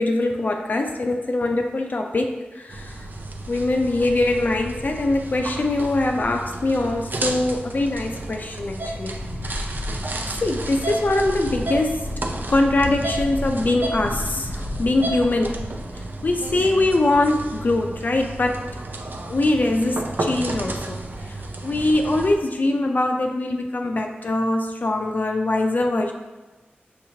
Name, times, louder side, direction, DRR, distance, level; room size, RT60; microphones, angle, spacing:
voice 1, 0.0-3.0 3.5-9.1 9.5-9.7 10.4-12.1 12.5-15.6 16.2-18.6 19.3-21.0 21.6-26.1, left 2 dB, 50° left, 3 dB, 0.4 m, -22 dB
sound 1, 2.7-22.4, right 2 dB, 60° right, 0.5 m, -32 dB
Wind, 9.1-15.9 16.2-16.7, left 1 dB, 75° left, 0.7 m, -34 dB
6.4 x 2.9 x 2.7 m, 1.2 s
wide cardioid pair, 80°, 4 cm